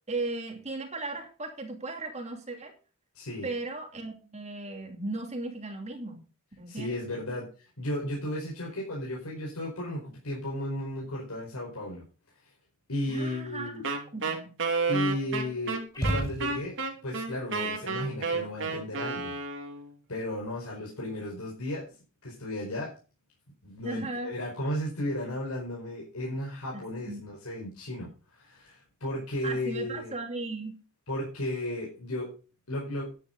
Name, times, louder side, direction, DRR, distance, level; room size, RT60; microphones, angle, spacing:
voice 1, 0.1-2.7 3.4-6.2 6.6-6.9 13.1-13.7 14.1-14.5 23.8-24.3 26.7-27.3 29.4-30.8, right 2 dB, 30° right, 3 dB, 2.8 m, -36 dB
voice 2, 3.1-3.5 6.7-7.5 7.8-12.0 12.9-13.8 14.9-19.4 20.1-21.9 22.2-22.9 23.6-30.2 31.1-32.3 32.7-33.1, left 1 dB, 75° left, -3 dB, 4.8 m, -34 dB
Wind instrument woodwind instrument, 13.8-19.9, right 4 dB, 60° right, 2.9 m, -31 dB
sound 1, 15.9-17.0, right 1 dB, 20° left, 5.1 m, -32 dB
11.0 x 10.5 x 4.0 m, 0.34 s
head